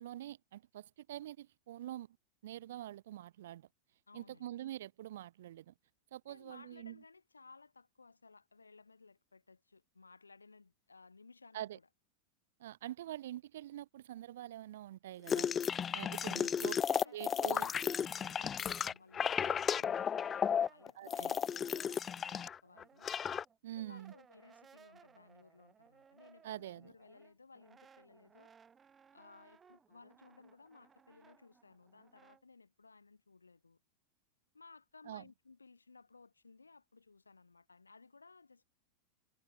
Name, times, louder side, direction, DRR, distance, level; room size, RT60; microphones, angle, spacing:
voice 1, 0.0-2.2 2.4-3.7 4.1-5.7 6.1-7.0 11.5-11.8 12.6-16.7 17.1-17.7 21.0-21.3 23.6-24.1 26.4-26.9 35.1-35.3, right 13 dB, 60° right, 0.8 m, -45 dB
voice 2, 4.1-4.6 6.3-11.9 16.0-17.7 18.0-23.1 23.8-28.5 29.1-33.8 34.5-38.7, left 4 dB, 80° left, 6.0 m, -60 dB
sound 1, 15.3-22.6 22.8-23.4, left 8 dB, 20° left, 0.8 m, -34 dB
Brass instrument, 15.6-20.0 20.3-32.4, right 6 dB, 20° right, 6.4 m, -64 dB
figure-of-eight pair, 90°, 0 cm